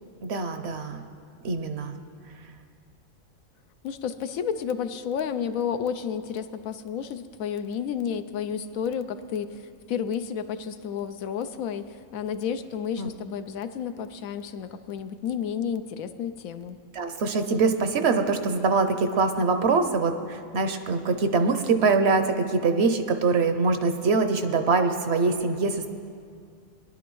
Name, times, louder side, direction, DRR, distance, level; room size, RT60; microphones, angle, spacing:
voice 1, 0.2-1.1 1.4-1.9 13.0-13.1 16.9-25.9, right 4 dB, 60° right, 7 dB, 0.8 m, -24 dB
voice 2, 3.8-16.8, left 7 dB, 85° left, 10 dB, 1.0 m, -31 dB
21.0 x 11.0 x 3.1 m, 2.3 s
omnidirectional pair, 1.4 m